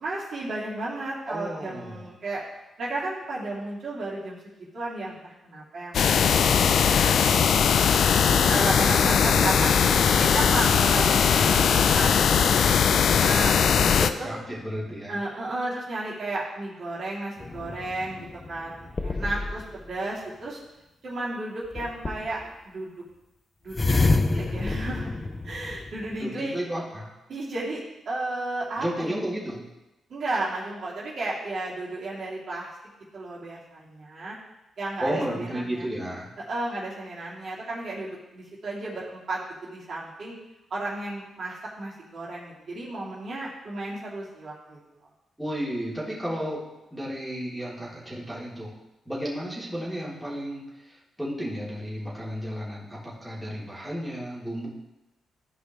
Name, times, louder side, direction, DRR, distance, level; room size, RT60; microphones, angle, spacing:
voice 1, 0.0-2.4 2.8-6.5 7.0-7.4 8.5-9.7 10.1-13.9 14.2-14.3 15.1-20.6 21.0-23.0 23.6-25.2 25.4-26.6 27.3-29.1 30.1-32.7 33.1-34.4 34.8-35.9 36.4-40.4 40.7-44.8, right 2 dB, 60° right, -7 dB, 2.8 m, -33 dB
voice 2, 1.3-2.1 8.2-8.8 13.8-15.2 26.2-27.1 28.8-29.6 35.0-36.3 45.4-46.6 46.9-48.7 49.0-54.7, equal, 5° right, -7 dB, 3.1 m, -33 dB
sound 1, 5.9-14.1, left 7 dB, 70° left, 0.4 m, -20 dB
Guitar, 8.2-14.9, right 1 dB, 35° right, 3.3 m, -39 dB
sound 2, 17.4-19.8 21.8-22.4 23.7-26.2, left 3 dB, 30° left, 0.6 m, -28 dB
13.5 x 5.0 x 3.1 m, 0.99 s
cardioid pair, 70°, 0 cm